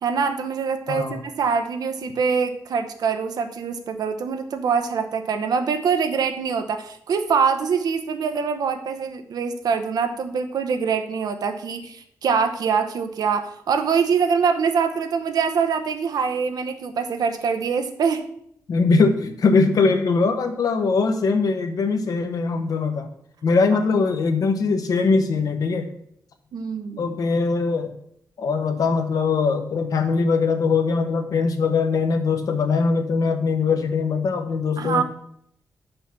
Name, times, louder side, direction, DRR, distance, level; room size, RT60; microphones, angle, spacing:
voice 1, 0.0-18.2 26.5-27.1 34.8-35.0, right 6 dB, 90° right, 7 dB, 0.9 m, -24 dB
voice 2, 0.9-1.2 18.7-23.1 23.4-25.9 27.0-27.9 28.4-35.0, left 4 dB, 70° left, 7 dB, 1.0 m, -21 dB
5.8 x 5.6 x 6.8 m, 0.70 s
wide cardioid pair, 140°, 6 cm